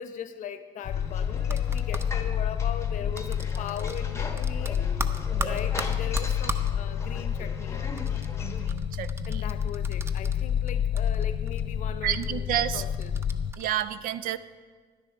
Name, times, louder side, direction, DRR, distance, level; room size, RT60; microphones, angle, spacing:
voice 1, 0.0-5.0 5.4-8.0 9.3-13.2, left 8 dB, 55° left, 11 dB, 0.7 m, -39 dB
sound 1, 0.8-13.5, left 8 dB, 35° left, 0.4 m, -29 dB
sound 2, 0.8-8.7, left 3 dB, 20° left, 0.8 m, -41 dB
sound 3, 1.4-2.1 3.2-4.1 4.3-6.7 8.0-10.7 10.9-11.6 12.1-12.3 12.9-13.8, right 2 dB, 15° right, 0.5 m, -37 dB
voice 2, 8.4-9.4 12.0-12.8 13.6-14.4, right 11 dB, 65° right, 15 dB, 0.5 m, -30 dB
11.0 x 10.0 x 4.4 m, 1.5 s
cardioid pair, 130°, 15 cm